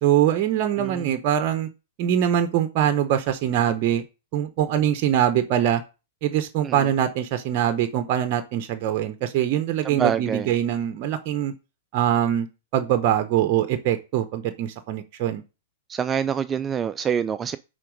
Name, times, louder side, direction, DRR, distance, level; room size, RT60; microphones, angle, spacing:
voice 1, 0.0-1.7 2.0-4.0 4.3-5.8 6.2-11.5 11.9-12.5 12.7-15.4, right 10 dB, 45° right, 0.8 m, -23 dB
voice 2, 9.8-10.5 15.9-17.6, right 7 dB, 20° right, 0.3 m, -26 dB
9.8 x 3.9 x 5.1 m
hypercardioid pair, 135°, 0 cm